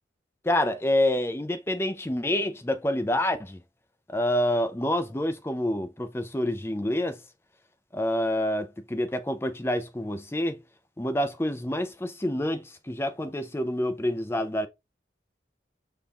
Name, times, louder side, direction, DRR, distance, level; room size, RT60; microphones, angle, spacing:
voice 1, 0.4-3.6 4.1-7.2 7.9-10.6 11.0-14.7, left 1 dB, 15° left, 0.5 m, -27 dB
5.2 x 2.4 x 4.1 m
head